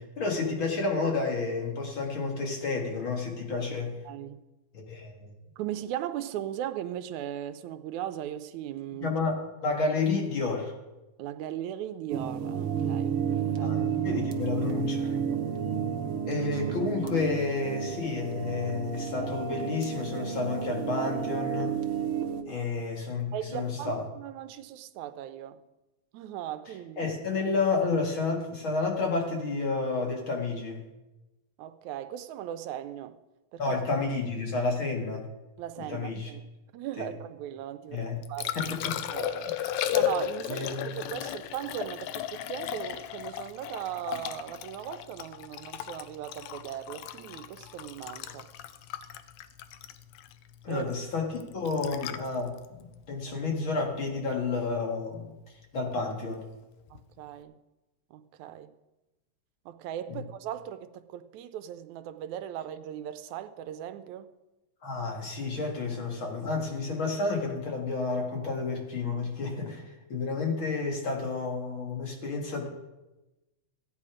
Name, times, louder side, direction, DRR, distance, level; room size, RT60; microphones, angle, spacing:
voice 1, 0.0-4.0 4.7-5.3 9.0-10.7 13.6-15.2 16.2-21.8 22.5-24.0 27.0-30.8 33.6-35.3 35.8-36.3 37.0-37.1 37.9-38.2 38.5-39.0 39.6-39.7 40.5-41.1 50.6-55.3 55.7-56.5 60.1-60.2 64.8-72.7, left 4 dB, 45° left, 2.5 m, -31 dB
voice 2, 4.1-4.4 5.6-9.2 11.2-13.7 15.7-15.9 22.5-22.7 23.3-25.6 26.1-27.1 31.6-33.2 33.5-33.6 35.6-36.5 36.7-38.6 39.1-39.5 39.9-48.5 50.7-50.9 56.9-57.5 58.1-58.7 59.7-64.3, right 11 dB, 85° right, 2.0 m, -38 dB
sound 1, 12.1-22.4, right 7 dB, 60° right, 1.6 m, -31 dB
Liquid, 38.0-54.1 56.9-57.0, left 11 dB, 80° left, 1.9 m, -35 dB
15.5 x 9.7 x 5.0 m
omnidirectional pair, 3.3 m